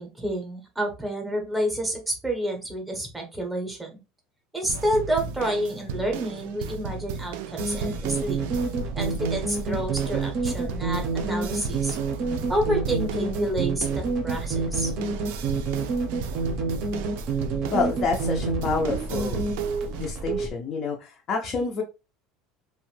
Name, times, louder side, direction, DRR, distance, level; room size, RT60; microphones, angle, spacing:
voice 1, 0.0-4.0 4.5-8.4 8.9-12.0 12.5-14.9, right 1 dB, 5° right, 2 dB, 0.7 m, -29 dB
sound 1, 4.7-20.1, right 5 dB, 80° right, 0.3 m, -36 dB
sound 2, 7.6-20.5, right 4 dB, 40° right, 0.6 m, -28 dB
voice 2, 17.7-19.4 19.9-21.8, left 4 dB, 35° left, -1 dB, 0.5 m, -28 dB
2.5 x 2.1 x 3.2 m, 0.28 s
cardioid pair, 165°, 0 cm